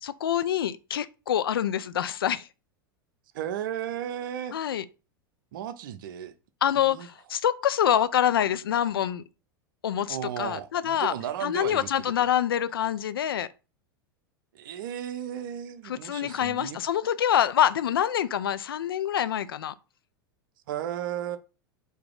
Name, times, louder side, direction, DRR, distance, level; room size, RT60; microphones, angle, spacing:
voice 1, 0.0-2.5 4.5-4.8 6.6-9.2 9.8-11.1 11.4-13.5 15.8-19.7, left 10 dB, 70° left, 0.4 m, -26 dB
voice 2, 3.3-4.6 5.5-6.3 6.8-7.1 10.1-11.9 14.5-16.8 20.7-21.4, right 10 dB, 60° right, 0.6 m, -34 dB
4.7 x 2.7 x 3.8 m
figure-of-eight pair, 90°, 13 cm